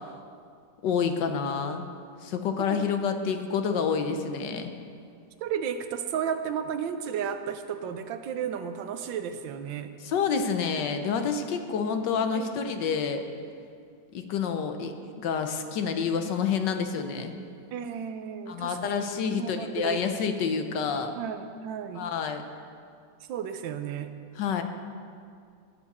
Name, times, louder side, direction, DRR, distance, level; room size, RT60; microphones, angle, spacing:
voice 1, 0.8-1.8 2.2-4.7 10.0-13.2 14.1-14.9 15.2-17.3 18.5-21.1 22.0-22.4 24.4-24.6, left 6 dB, 75° left, 7 dB, 1.5 m, -28 dB
voice 2, 5.4-9.9 12.3-12.6 12.8-12.9 17.7-19.0 19.3-20.0 21.2-22.1 23.3-24.1, right 8 dB, 85° right, 9 dB, 1.4 m, -33 dB
18.5 x 7.2 x 4.2 m, 2.3 s
omnidirectional pair, 2.0 m